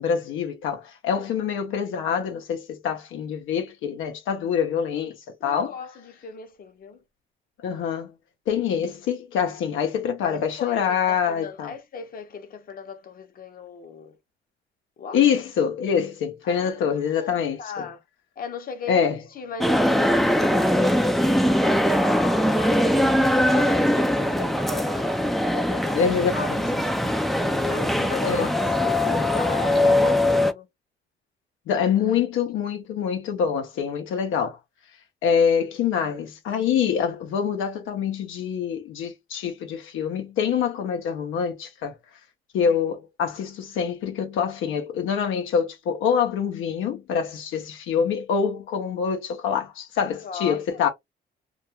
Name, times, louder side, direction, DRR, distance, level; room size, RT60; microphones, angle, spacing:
voice 1, 0.0-5.2 5.4-5.7 7.6-8.1 8.5-11.7 15.1-17.9 18.9-19.2 25.9-26.8 28.2-28.5 31.7-34.6 35.2-42.0 42.5-50.9, left 7 dB, 80° left, 0.6 m, -25 dB
voice 2, 5.4-7.0 10.2-14.2 15.0-15.2 16.4-18.0 18.4-23.0 23.4-25.1 25.5-30.7 32.1-32.2 50.2-50.9, left 5 dB, 45° left, 0.7 m, -37 dB
sound 1, 19.6-30.5, left 1 dB, ahead, 0.3 m, -21 dB
2.3 x 2.2 x 2.7 m
cardioid pair, 90°, 20 cm